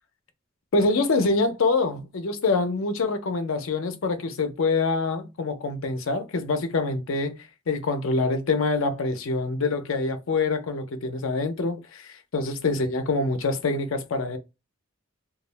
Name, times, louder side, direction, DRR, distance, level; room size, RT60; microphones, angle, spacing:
voice 1, 0.7-7.4 7.7-14.4, left 3 dB, 80° left, 0.5 m, -25 dB
2.3 x 2.0 x 3.2 m
head